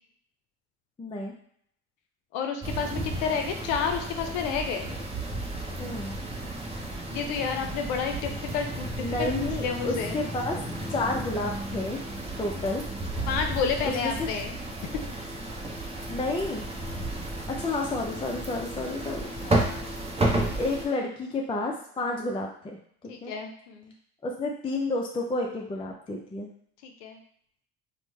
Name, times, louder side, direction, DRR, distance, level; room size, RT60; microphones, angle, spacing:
voice 1, 1.0-1.3 5.8-6.2 9.0-10.6 10.9-12.0 12.4-12.8 14.0-14.1 16.1-16.6 17.5-19.3 20.5-22.8 23.2-23.3 24.2-26.5, left 2 dB, 15° left, 0 dB, 0.4 m, -30 dB
voice 2, 2.3-4.9 7.1-10.2 13.3-14.6 19.4-19.9 23.1-23.9 26.8-27.2, left 6 dB, 80° left, 4 dB, 0.5 m, -30 dB
sound 1, 2.6-20.9, right 1 dB, 20° right, 0.7 m, -33 dB
3.2 x 2.1 x 3.1 m, 0.66 s
supercardioid pair, 75°, 33 cm